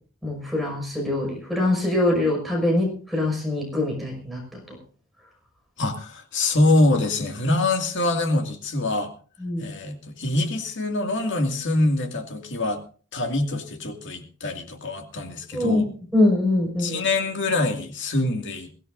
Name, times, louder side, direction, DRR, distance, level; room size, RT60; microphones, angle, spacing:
voice 1, 0.2-4.4 4.7-4.8 9.4-9.6 15.5-15.9 16.1-17.0, left 1 dB, ahead, -1 dB, 5.8 m, -23 dB
voice 2, 5.8-9.1 9.6-12.8 13.1-15.9 16.8-18.7, left 2 dB, 55° left, 5 dB, 2.3 m, -24 dB
22.5 x 16.0 x 2.6 m, 0.39 s
head